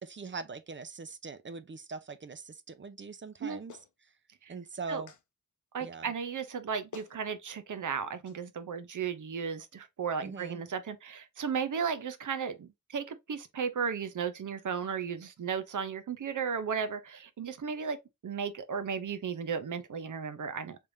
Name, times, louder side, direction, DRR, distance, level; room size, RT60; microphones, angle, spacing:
voice 1, 0.0-3.8 4.5-5.1 5.8-6.1 10.2-10.6, right 4 dB, 40° right, 0.5 m, -42 dB
Clapping, 3.7-3.9 5.1-5.2 6.5-6.6 6.9-7.2 8.3-8.4, left 6 dB, 75° left, 0.6 m, -48 dB
voice 2, 5.7-18.0 18.2-20.8, right 6 dB, 85° right, 0.7 m, -35 dB
3.3 x 3.3 x 2.6 m
wide cardioid pair, 110°, 30 cm